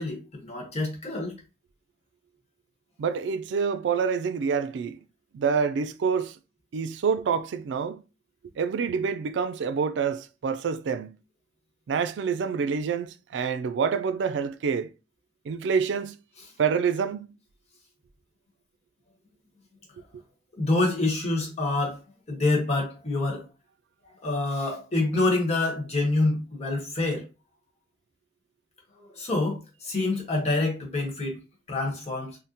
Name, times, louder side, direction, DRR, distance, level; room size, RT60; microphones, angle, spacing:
voice 1, 0.0-1.4 20.6-22.0 22.3-23.4 24.2-27.2 29.0-31.4 31.7-32.4, left 2 dB, 35° left, 1.0 m, -26 dB
voice 2, 3.0-5.0 5.3-6.3 6.7-8.0 8.6-11.1 11.9-14.9 15.5-16.1 16.6-17.3, right 6 dB, 90° right, 0.3 m, -27 dB
3.7 x 2.1 x 2.7 m
head